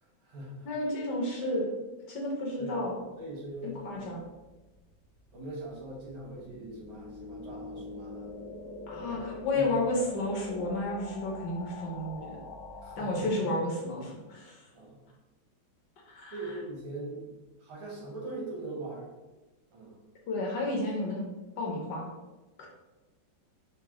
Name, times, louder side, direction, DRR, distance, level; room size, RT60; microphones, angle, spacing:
voice 1, 0.0-0.7 2.6-2.9 3.2-4.2 5.3-8.3 9.1-9.7 12.8-13.5 14.7-15.0 16.3-19.1 19.7-20.0, right 2 dB, 90° right, -3 dB, 1.9 m, -41 dB
voice 2, 0.6-1.7 2.1-3.0 3.6-4.2 8.9-12.4 13.0-14.7 16.1-16.4 20.3-21.3 21.6-22.1 22.6-22.7, left 1 dB, 65° left, -2 dB, 1.2 m, -32 dB
sound 1, 4.3-13.4, left 3 dB, 80° left, 1.4 m, -45 dB
4.8 x 2.1 x 2.9 m, 1.1 s
omnidirectional pair, 2.2 m